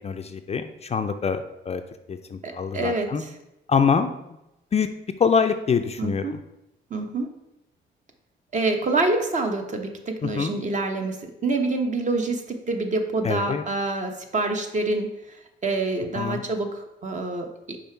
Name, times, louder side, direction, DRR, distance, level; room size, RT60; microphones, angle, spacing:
voice 1, 0.0-1.8 2.1-3.2 3.7-4.1 4.7-4.9 5.2-6.4 10.2-10.5 13.2-13.6 16.1-16.4, left 6 dB, 35° left, 8 dB, 0.4 m, -24 dB
voice 2, 2.4-3.3 6.0-6.4 6.9-7.3 8.5-15.4 15.6-17.8, right 2 dB, 40° right, 5 dB, 1.0 m, -27 dB
5.4 x 4.9 x 4.4 m, 0.89 s
cardioid pair, 90°, 20 cm